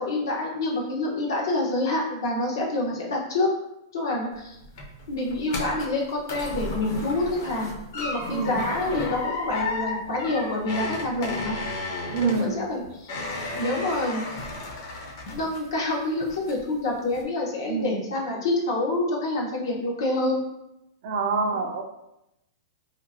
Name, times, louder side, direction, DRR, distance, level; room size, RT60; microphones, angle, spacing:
voice 1, 0.0-3.5 3.9-4.6 5.1-11.5 12.2-13.3 13.5-14.2 15.3-20.4 21.5-21.6, left 2 dB, 85° left, -2 dB, 0.9 m, -27 dB
sound 1, 4.3-15.9 16.2-16.7 17.1-17.2, left 2 dB, 40° left, 0.5 m, -34 dB
voice 2, 8.3-8.6 12.1-12.5 17.7-17.9 21.0-21.8, right 4 dB, 40° right, 4 dB, 0.3 m, -26 dB
2.8 x 2.6 x 2.6 m, 0.87 s
supercardioid pair, 175°, 2 cm